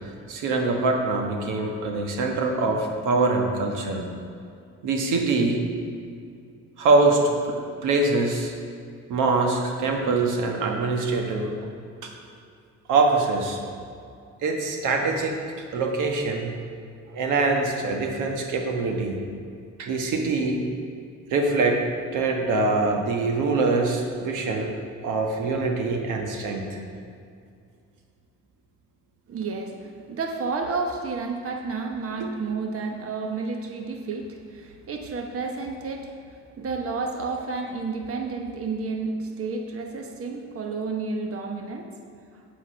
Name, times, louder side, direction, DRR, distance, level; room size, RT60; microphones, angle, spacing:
voice 1, 0.3-4.1 4.8-5.6 6.8-7.2 7.5-7.6 7.8-8.5 9.1-11.5 12.0-12.1 12.9-13.6 14.4-15.4 15.7-16.5 17.1-19.2 19.8-20.6 21.3-21.8 22.1-24.7 25.0-26.8 32.2-32.3, right 3 dB, 85° right, 2 dB, 1.3 m, -24 dB
voice 2, 29.3-41.9, right 4 dB, 50° right, 3 dB, 1.1 m, -31 dB
8.5 x 8.3 x 5.6 m, 2.4 s
cardioid pair, 90°, 30 cm